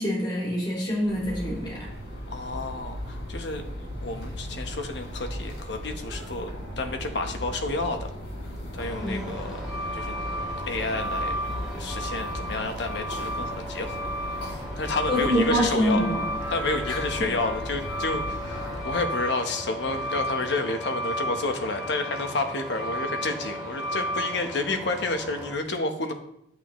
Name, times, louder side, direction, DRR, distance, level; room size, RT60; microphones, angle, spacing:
voice 1, 0.0-1.9 9.0-9.2 15.1-16.3 16.8-17.3, equal, 25° left, -5 dB, 2.3 m, -26 dB
sound 1, 1.0-18.8, equal, 85° left, 3.5 m, -37 dB
voice 2, 2.3-3.6 4.0-6.5 6.8-8.1 8.7-9.7 9.9-10.1 10.7-11.3 11.8-14.0 14.8-16.0 16.5-26.1, left 3 dB, 65° left, 5 dB, 1.0 m, -30 dB
Truck, 8.8-25.5, equal, ahead, 2.9 m, -33 dB
8.6 x 8.3 x 3.1 m, 0.78 s
head